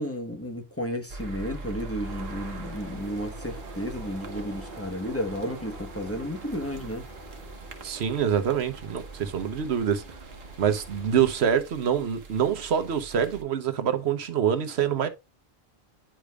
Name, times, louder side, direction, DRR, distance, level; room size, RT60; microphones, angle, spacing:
voice 1, 0.0-7.1, equal, 15° left, 1.0 m, -33 dB
sound 1, 1.1-13.4, right 2 dB, 70° right, 1.3 m, -43 dB
sound 2, 2.0-11.4, right 2 dB, 50° right, 1.5 m, -44 dB
voice 2, 7.8-10.0 10.6-15.1, right 8 dB, 90° right, 1.2 m, -25 dB
10.0 x 5.1 x 2.3 m
omnidirectional pair, 1.1 m